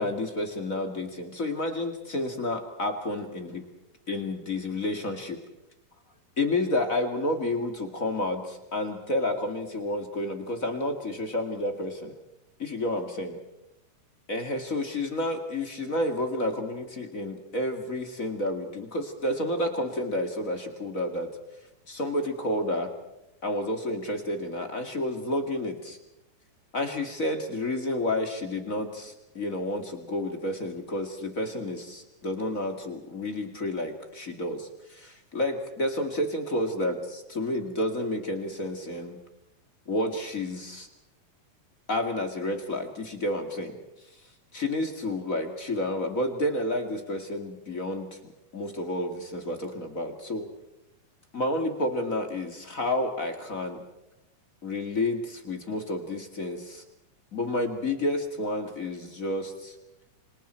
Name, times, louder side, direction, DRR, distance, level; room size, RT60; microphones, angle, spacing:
voice 1, 0.0-3.6 4.1-5.4 6.4-12.2 12.6-13.4 14.3-21.3 21.9-22.9 23.4-26.0 26.7-39.2 39.8-40.9 41.9-43.8 44.0-44.2 44.5-50.5 51.3-53.8 54.6-56.8 57.3-59.7, left 1 dB, 30° left, 5 dB, 1.5 m, -30 dB
30.0 x 26.0 x 4.4 m, 0.91 s
omnidirectional pair, 4.5 m